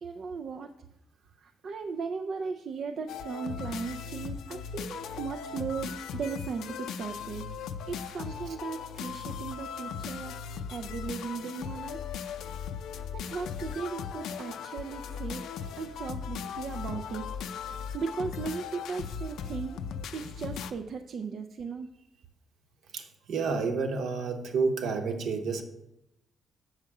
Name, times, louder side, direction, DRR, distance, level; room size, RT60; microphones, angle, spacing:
voice 1, 0.0-0.7 1.4-7.5 7.9-10.3 10.7-12.0 13.1-15.4 15.8-17.5 17.9-19.8 20.1-21.9, right 5 dB, 45° right, 5 dB, 0.4 m, -37 dB
sound 1, 3.1-20.7, left 7 dB, 80° left, 0.5 m, -38 dB
voice 2, 22.9-25.6, right 4 dB, 60° right, 6 dB, 1.0 m, -30 dB
7.6 x 6.4 x 4.8 m, 0.85 s
cardioid pair, 175°, 0 cm